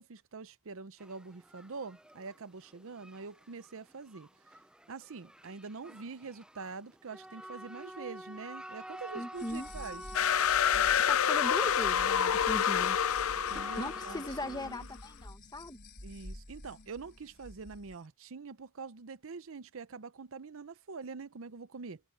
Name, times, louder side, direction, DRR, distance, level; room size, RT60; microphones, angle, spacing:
voice 1, 0.0-4.3 4.9-10.0 13.5-14.9 16.0-22.0, right 4 dB, 65° right, 0.7 m, -45 dB
sound 1, 1.0-14.8, right 1 dB, 5° right, 0.6 m, -47 dB
voice 2, 9.1-9.7 10.7-13.0 13.8-15.8, left 1 dB, 20° left, 1.6 m, -39 dB
sound 2, 9.3-18.0, left 1 dB, 50° left, 4.6 m, -49 dB
sound 3, 10.1-14.6, left 9 dB, 70° left, 0.5 m, -28 dB
head